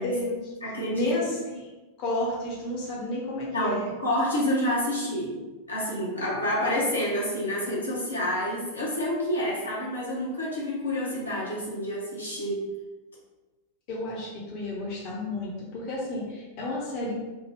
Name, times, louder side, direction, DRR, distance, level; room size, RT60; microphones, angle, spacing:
voice 1, 0.0-0.5 0.9-1.7 2.0-3.9 13.9-17.1, left 1 dB, 45° left, -4 dB, 0.8 m, -31 dB
voice 2, 0.6-1.1 3.5-5.4 5.7-12.7, left 1 dB, 80° left, -6 dB, 0.9 m, -28 dB
3.3 x 2.2 x 3.3 m, 1.2 s
figure-of-eight pair, 90°, 0 cm